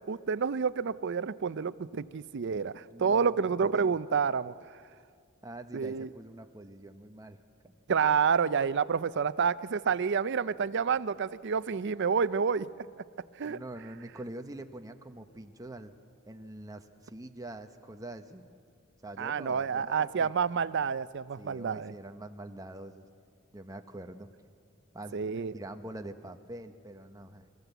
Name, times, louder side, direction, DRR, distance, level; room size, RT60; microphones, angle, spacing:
voice 1, 0.1-4.5 5.7-6.1 7.9-12.7 13.4-13.6 19.2-21.9 25.1-25.5, right 6 dB, 60° right, 16 dB, 0.5 m, -29 dB
voice 2, 2.9-4.0 5.4-7.7 13.4-15.9 16.3-18.5 19.0-20.3 21.4-23.1 23.5-24.3 24.9-27.5, right 1 dB, 15° right, 7 dB, 1.0 m, -45 dB
26.0 x 14.0 x 8.1 m, 2.2 s
head